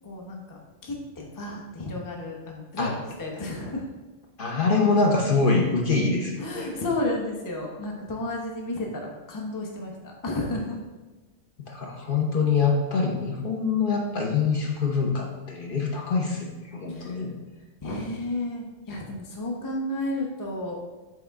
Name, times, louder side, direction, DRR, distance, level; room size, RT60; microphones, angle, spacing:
voice 1, 0.0-2.9 3.2-3.9 6.4-10.8 16.9-17.2 17.8-20.8, left 2 dB, 20° left, 0 dB, 0.7 m, -32 dB
voice 2, 4.4-6.7 11.6-17.4, left 4 dB, 50° left, -1 dB, 0.9 m, -24 dB
8.3 x 3.5 x 3.5 m, 1.2 s
omnidirectional pair, 1.2 m